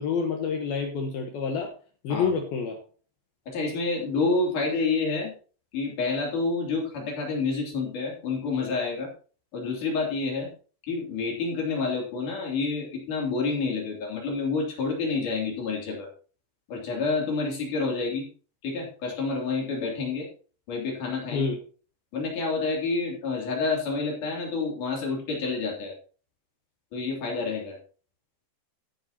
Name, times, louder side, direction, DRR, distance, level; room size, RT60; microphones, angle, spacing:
voice 1, 0.0-1.7 2.0-2.8 21.3-21.6, left 5 dB, 70° left, 3 dB, 2.8 m, -28 dB
voice 2, 3.5-5.3 5.7-9.1 9.5-10.5 10.8-16.1 16.7-18.3 18.6-20.3 20.7-21.5 22.1-25.9 26.9-27.8, left 4 dB, 50° left, -1 dB, 4.3 m, -28 dB
14.0 x 9.8 x 2.9 m, 0.39 s
omnidirectional pair, 5.0 m